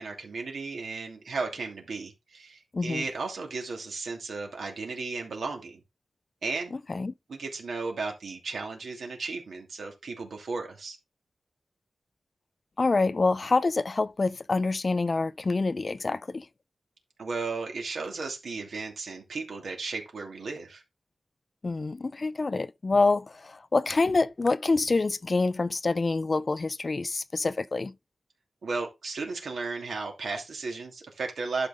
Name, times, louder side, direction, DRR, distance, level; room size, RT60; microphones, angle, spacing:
voice 1, 0.0-5.8 6.4-6.7 7.3-11.0 17.2-20.8 28.6-31.7, right 4 dB, 85° right, 2.7 m, -35 dB
voice 2, 2.7-3.0 6.9-7.1 12.8-16.5 21.6-27.9, left 3 dB, 40° left, 0.5 m, -26 dB
11.5 x 5.0 x 3.6 m
wide cardioid pair, 100°, 0 cm